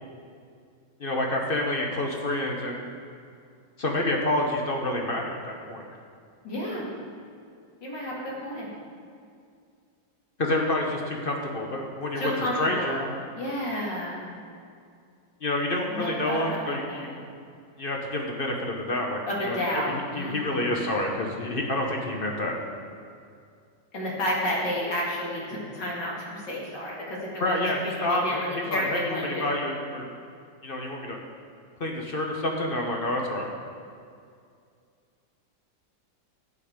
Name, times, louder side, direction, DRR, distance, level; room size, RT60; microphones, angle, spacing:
voice 1, 1.0-2.9 3.8-5.8 10.4-13.0 15.4-17.1 17.8-22.5 27.4-30.1 30.6-31.2 31.8-33.5, left 1 dB, 40° left, 1 dB, 0.9 m, -28 dB
voice 2, 6.4-6.9 7.8-8.7 12.2-13.1 13.4-14.3 15.9-17.1 19.2-20.7 23.9-29.6, equal, 70° left, -4 dB, 2.8 m, -31 dB
11.0 x 8.4 x 5.0 m, 2.3 s
omnidirectional pair, 2.0 m